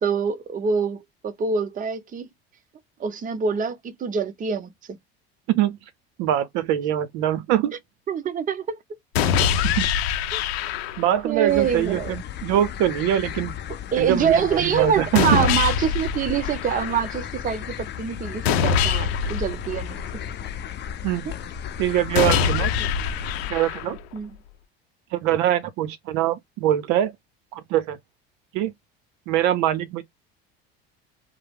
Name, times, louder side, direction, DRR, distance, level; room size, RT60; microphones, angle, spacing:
voice 1, 0.0-2.3 3.0-5.0 8.1-8.8 10.3-10.4 11.2-12.2 13.9-20.0 22.3-22.5 22.8-22.9 24.1-24.3, right 6 dB, 25° right, 0.6 m, -25 dB
voice 2, 6.2-7.7 9.6-9.9 11.0-13.6 14.0-15.5 21.0-21.3 21.8-22.7 23.5-24.0 25.1-27.1 27.5-28.0 28.5-28.7 29.3-30.0, right 12 dB, 70° right, 0.6 m, -23 dB
sound 1, 9.1-11.2 15.1-17.2 18.4-20.5 22.1-24.2, left 7 dB, 85° left, 0.6 m, -24 dB
sound 2, 11.5-23.5, left 9 dB, 35° left, 0.5 m, -35 dB
2.1 x 2.0 x 3.3 m
supercardioid pair, 85°, 31 cm